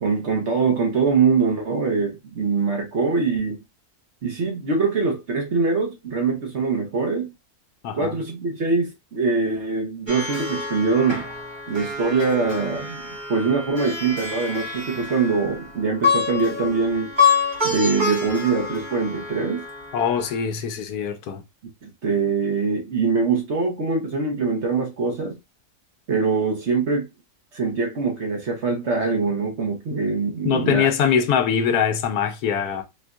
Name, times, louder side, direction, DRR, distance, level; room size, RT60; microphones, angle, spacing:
voice 1, 0.0-3.6 4.2-7.3 7.9-11.2 11.7-17.1 17.6-19.7 21.8-25.3 26.1-27.1 27.5-30.9, right 4 dB, 50° right, 1.1 m, -23 dB
Plucked string instrument, 10.1-20.4, left 5 dB, 20° right, 0.7 m, -27 dB
voice 2, 19.9-21.4 30.4-32.8, left 7 dB, 75° left, 1.1 m, -22 dB
4.4 x 2.5 x 2.3 m
omnidirectional pair, 1.7 m